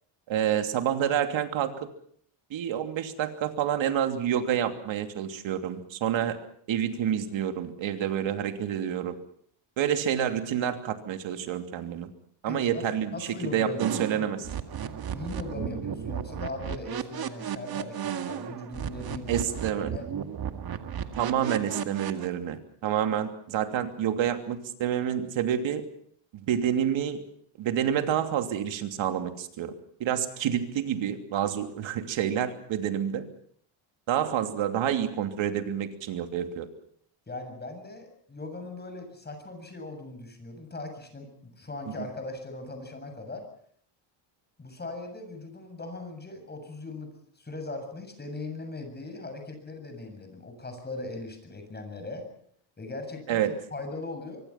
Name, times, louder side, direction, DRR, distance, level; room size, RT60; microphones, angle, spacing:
voice 1, 0.3-1.9 2.5-6.4 6.7-9.2 9.8-12.1 12.4-13.1 13.5-14.4 19.3-19.9 21.1-25.8 26.3-27.2 27.6-29.7 30.0-33.2 34.1-36.7 41.9-42.0 53.3-53.6, right 9 dB, 65° right, 6 dB, 3.0 m, -28 dB
voice 2, 12.5-12.8 13.1-14.2 15.1-20.0 37.3-43.5 44.6-52.3 52.8-53.4 53.7-54.4, left 2 dB, 20° left, 6 dB, 7.4 m, -39 dB
sound 1, 13.8-22.3, right 8 dB, 45° right, 2.1 m, -34 dB
24.5 x 24.0 x 5.9 m, 0.62 s
cardioid pair, 125°, 49 cm